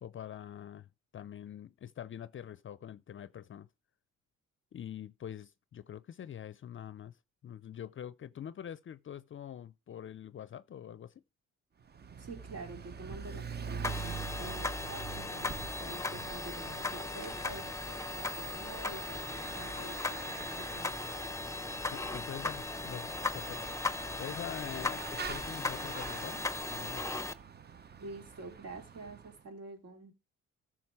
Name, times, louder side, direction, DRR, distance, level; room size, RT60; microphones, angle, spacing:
voice 1, 0.0-3.7 4.7-7.2 7.4-11.2 21.9-23.1 23.3-23.6 24.2-27.2, left 9 dB, 40° left, 0.5 m, -45 dB
Bicycle / Mechanisms, 11.8-29.4, right 5 dB, 35° right, 0.7 m, -46 dB
voice 2, 12.2-21.0 28.0-30.1, right 3 dB, 55° right, 2.9 m, -48 dB
sound 1, 13.8-27.3, left 3 dB, 10° left, 0.8 m, -37 dB
14.0 x 6.0 x 4.7 m
cardioid pair, 90°, 30 cm